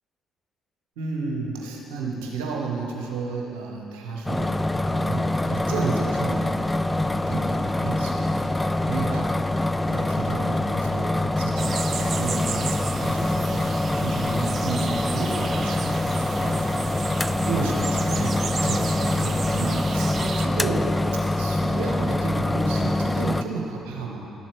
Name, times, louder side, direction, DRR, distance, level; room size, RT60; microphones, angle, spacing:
voice 1, 1.0-6.6 6.9-9.4 9.8-13.7 14.0-16.9 17.2-20.9 21.4-24.3, right 4 dB, 75° right, -1 dB, 1.2 m, -32 dB
sound 1, 4.3-23.4, left 2 dB, 15° left, 0.3 m, -25 dB
sound 2, 11.6-20.5, right 6 dB, 50° right, 0.4 m, -34 dB
12.0 x 7.2 x 4.6 m, 3.0 s
hypercardioid pair, 45°, 0 cm